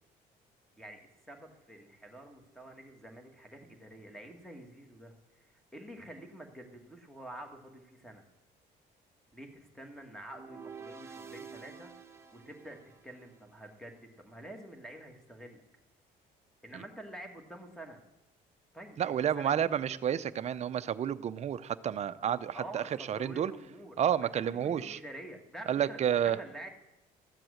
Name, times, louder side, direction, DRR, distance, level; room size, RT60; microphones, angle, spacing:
voice 1, 0.8-8.2 9.3-12.8 13.0-15.6 16.6-18.0 18.7-19.8 22.5-26.7, right 1 dB, 5° left, 4 dB, 1.8 m, -48 dB
sound 1, 10.3-13.5, right 6 dB, 15° right, 1.4 m, -49 dB
voice 2, 19.0-23.5 24.0-25.0 25.7-26.4, right 9 dB, 40° right, 13 dB, 0.5 m, -30 dB
13.5 x 7.6 x 6.4 m, 0.94 s
cardioid pair, 110°, 17 cm